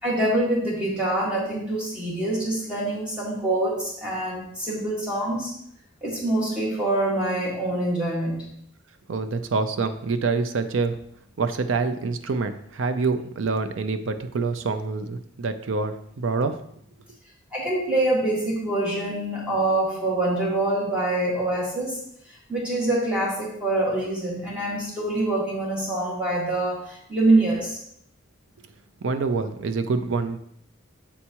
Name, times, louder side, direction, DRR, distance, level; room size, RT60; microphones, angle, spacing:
voice 1, 0.0-5.5 6.0-8.4 17.5-22.0 22.5-27.8, right 2 dB, 5° right, -6 dB, 1.9 m, -25 dB
voice 2, 9.1-11.0 11.4-16.6 29.0-30.4, right 4 dB, 65° right, 9 dB, 0.5 m, -26 dB
7.2 x 4.6 x 2.9 m, 0.70 s
head